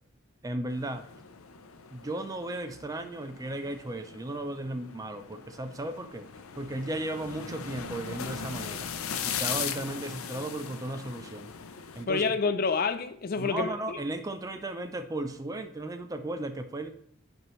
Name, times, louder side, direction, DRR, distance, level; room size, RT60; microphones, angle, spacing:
voice 1, 0.4-1.0 1.9-6.3 6.6-8.9 9.2-11.5 11.9-12.2 13.4-16.9, right 1 dB, 15° right, 0.4 m, -35 dB
sound 1, 0.7-12.0, left 7 dB, 90° left, 0.6 m, -39 dB
voice 2, 12.1-14.0, left 4 dB, 45° left, 0.4 m, -28 dB
9.9 x 4.6 x 3.1 m
head